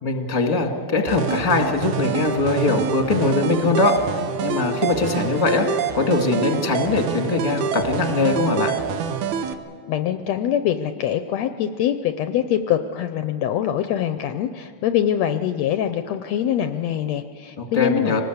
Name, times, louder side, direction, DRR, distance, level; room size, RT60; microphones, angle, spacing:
voice 1, 0.0-5.7 5.9-8.7 17.6-18.2, left 3 dB, 15° left, 4 dB, 1.5 m, -21 dB
sound 1, 1.1-9.5, right 7 dB, 75° right, 2.3 m, -26 dB
voice 2, 9.9-18.2, left 10 dB, 75° left, 9 dB, 1.7 m, -24 dB
24.5 x 19.5 x 8.0 m, 2.4 s
omnidirectional pair, 3.4 m